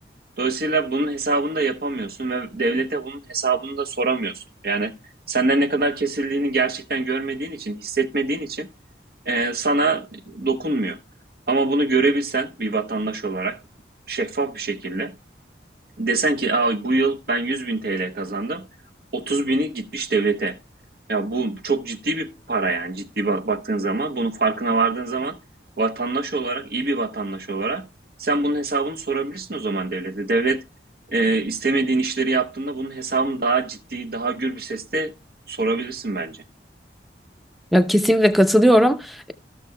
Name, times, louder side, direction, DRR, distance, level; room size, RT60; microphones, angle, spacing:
voice 1, 0.4-4.9 5.3-8.7 9.3-11.0 11.5-13.6 14.1-15.2 16.0-18.7 19.1-20.6 21.1-25.4 25.8-27.9 28.2-30.6 31.1-35.1 35.5-36.4, right 3 dB, 55° right, 0.9 m, -24 dB
voice 2, 37.7-39.3, equal, ahead, 0.5 m, -17 dB
14.0 x 6.5 x 2.2 m
head